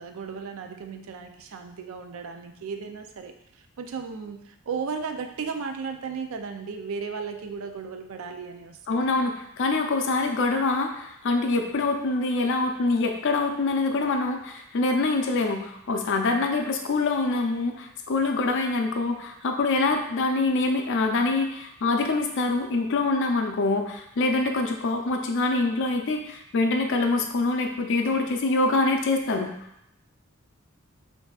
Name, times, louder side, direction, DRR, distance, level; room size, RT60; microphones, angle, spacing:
voice 1, 0.0-3.3 3.8-9.0, right 5 dB, 70° right, 6 dB, 0.4 m, -35 dB
voice 2, 8.9-29.5, left 3 dB, 60° left, 4 dB, 0.5 m, -25 dB
5.8 x 2.7 x 2.4 m, 0.76 s
head